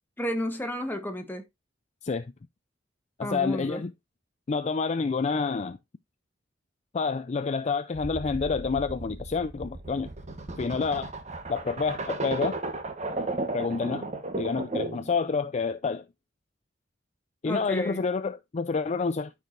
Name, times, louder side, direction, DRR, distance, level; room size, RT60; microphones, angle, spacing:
voice 1, 0.2-1.4 3.2-3.8 17.4-18.0, equal, 10° left, 1.4 m, -32 dB
voice 2, 3.2-3.9 4.5-5.8 6.9-10.1 10.6-11.1 11.5-12.6 13.5-14.1 14.4-16.0 17.4-19.3, left 4 dB, 35° left, 0.4 m, -28 dB
sound 1, 7.9-15.1, right 2 dB, 35° right, 1.2 m, -34 dB
12.5 x 4.8 x 2.6 m
head